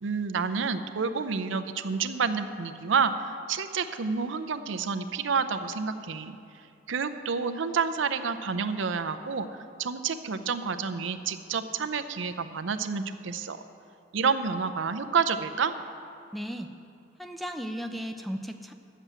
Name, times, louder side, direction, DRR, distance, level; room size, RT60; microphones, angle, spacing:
voice 1, 0.0-6.4 6.9-9.5 9.8-13.6 14.1-15.7, right 5 dB, 80° right, 10 dB, 0.6 m, -29 dB
voice 2, 16.3-16.7 17.2-18.7, equal, ahead, 6 dB, 0.4 m, -35 dB
9.5 x 7.4 x 8.1 m, 2.6 s
head